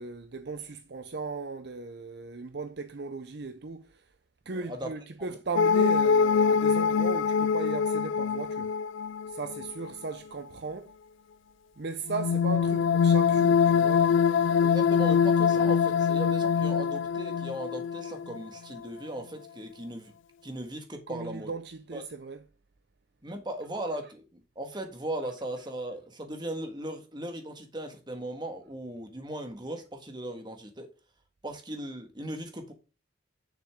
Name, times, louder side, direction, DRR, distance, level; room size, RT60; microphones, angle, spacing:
voice 1, 0.0-4.1 4.5-8.7 9.3-11.0 11.8-14.1 21.1-22.4, right 4 dB, 55° right, 0.6 m, -37 dB
voice 2, 4.5-4.9 5.3-5.4 14.6-20.1 20.4-21.5 21.9-22.0 23.2-30.9 31.4-32.7, right 1 dB, 20° right, 1.6 m, -38 dB
sound 1, 5.6-9.9 12.1-18.4 18.8-18.9, left 6 dB, 70° left, 0.3 m, -24 dB
9.8 x 6.7 x 3.7 m
head